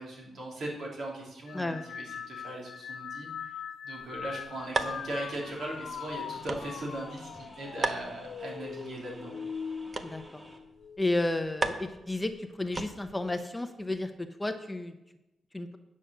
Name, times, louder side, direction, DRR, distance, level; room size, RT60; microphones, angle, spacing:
voice 1, 0.0-9.3, right 1 dB, 65° right, -3 dB, 3.4 m, -39 dB
sound 1, 1.5-11.1 11.5-12.1 13.1-13.4, left 7 dB, 70° left, 0.6 m, -42 dB
sound 2, 4.0-13.3, right 3 dB, 40° right, 0.8 m, -39 dB
sound 3, 4.6-10.6, right 1 dB, 20° right, 1.8 m, -53 dB
voice 2, 10.0-10.4 11.0-14.9 15.5-15.8, left 2 dB, 15° left, 7 dB, 0.7 m, -32 dB
9.9 x 6.4 x 6.6 m, 0.94 s
cardioid pair, 105°, 0 cm